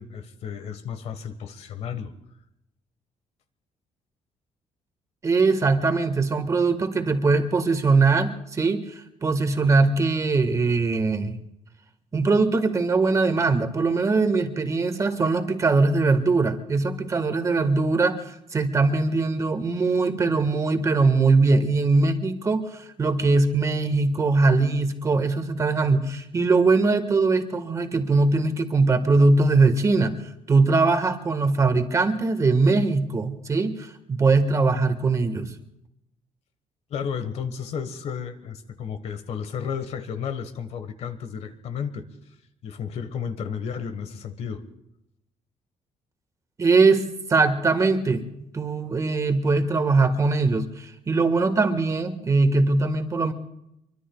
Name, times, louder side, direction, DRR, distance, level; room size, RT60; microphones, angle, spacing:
voice 1, 0.0-2.1 36.9-42.1 42.6-44.6, left 7 dB, 65° left, 10 dB, 1.4 m, -33 dB
voice 2, 5.2-8.8 9.2-11.4 12.1-30.1 30.5-35.5 46.6-48.2 48.5-53.3, right 3 dB, 25° right, 7 dB, 1.5 m, -21 dB
24.5 x 24.0 x 2.3 m, 0.82 s
cardioid pair, 145°, 12 cm